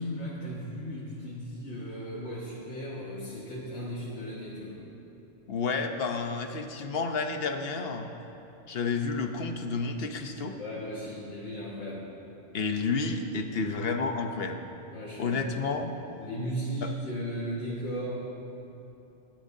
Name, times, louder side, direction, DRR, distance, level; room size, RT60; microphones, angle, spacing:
voice 1, 0.0-4.8 10.5-12.1 14.8-15.6 16.2-18.1, equal, 85° left, -8 dB, 2.1 m, -36 dB
voice 2, 5.5-8.1 8.7-10.6 12.5-14.6 15.2-15.9 16.8-16.9, left 4 dB, 65° left, 5 dB, 1.1 m, -30 dB
21.0 x 12.0 x 2.7 m, 2.9 s
omnidirectional pair, 1.1 m